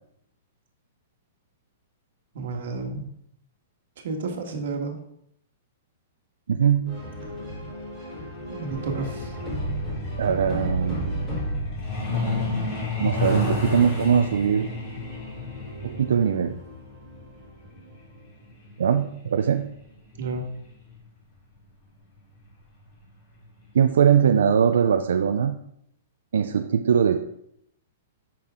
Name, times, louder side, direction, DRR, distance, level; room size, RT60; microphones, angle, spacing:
voice 1, 2.3-3.0 4.0-5.0 8.5-9.3 20.2-20.4, right 3 dB, 60° right, 3 dB, 1.5 m, -31 dB
voice 2, 6.5-7.0 10.2-11.3 13.0-14.7 15.8-16.6 18.8-19.7 23.7-25.6 26.3-27.2, right 7 dB, 90° right, 7 dB, 0.4 m, -21 dB
sound 1, 6.9-12.1 13.2-18.1, right 1 dB, 5° left, 3.4 m, -35 dB
Truck, 8.7-21.0 22.2-22.4 22.8-23.0 23.3-23.6 23.9-24.0 24.5-24.6, left 2 dB, 25° left, 2.3 m, -32 dB
8.5 x 6.0 x 3.6 m, 0.74 s
hypercardioid pair, 175°, 0 cm